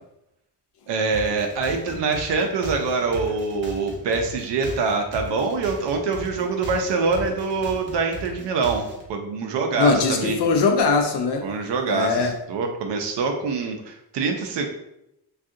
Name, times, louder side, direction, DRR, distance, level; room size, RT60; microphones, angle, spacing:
voice 1, 0.9-10.4 11.4-14.6, right 4 dB, 75° right, 3 dB, 0.5 m, -25 dB
sound 1, 1.1-9.1, right 2 dB, 30° right, 0.6 m, -37 dB
voice 2, 9.8-11.5 11.9-12.4, left 4 dB, 70° left, 4 dB, 0.5 m, -21 dB
2.6 x 2.4 x 3.6 m, 0.84 s
cardioid pair, 140°, 42 cm